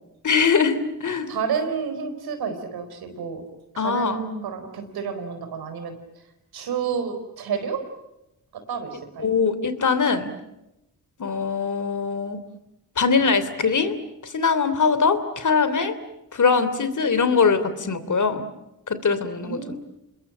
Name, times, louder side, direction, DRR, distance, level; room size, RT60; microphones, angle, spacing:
voice 1, 0.2-1.3 3.8-4.2 9.2-10.3 11.2-12.4 13.0-14.0 14.2-16.0 16.3-18.4 18.9-19.7, left 5 dB, 55° left, 12 dB, 3.1 m, -22 dB
voice 2, 1.3-3.4 3.7-5.9 6.5-7.8 8.5-9.3 19.4-19.7, right 6 dB, 90° right, 7 dB, 4.5 m, -30 dB
28.0 x 21.0 x 8.8 m, 0.90 s
cardioid pair, 60°, 36 cm